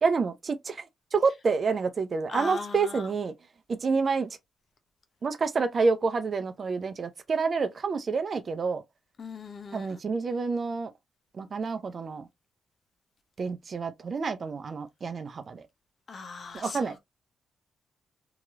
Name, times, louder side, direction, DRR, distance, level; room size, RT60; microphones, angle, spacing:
voice 1, 0.0-3.3 3.7-4.3 5.2-8.8 9.7-10.9 11.3-12.3 13.4-15.7 16.5-17.0, right 4 dB, 50° right, 0.6 m, -28 dB
voice 2, 2.3-3.0 9.2-10.0 16.1-17.0, left 4 dB, 55° left, 0.7 m, -39 dB
2.9 x 2.9 x 2.4 m
supercardioid pair, 55°, 0 cm